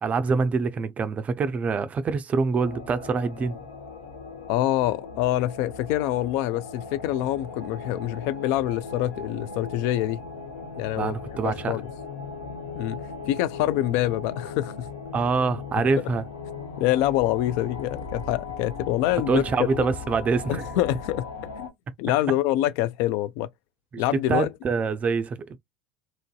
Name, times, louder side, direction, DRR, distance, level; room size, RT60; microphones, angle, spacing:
voice 1, 0.0-3.6 11.0-11.8 15.1-16.2 19.3-20.7 23.9-24.0 24.3-25.6, right 4 dB, 30° right, 0.4 m, -25 dB
sound 1, 2.6-21.7, left 4 dB, 80° left, 0.9 m, -38 dB
voice 2, 4.5-10.2 10.8-11.1 11.4-11.9 12.8-13.0 13.3-14.9 16.8-19.4 19.7-19.9 20.5-21.3 21.6-21.7 22.0-23.5 24.0-24.5, left 14 dB, 60° left, 0.3 m, -25 dB
3.0 x 2.5 x 2.2 m
hypercardioid pair, 75°, 5 cm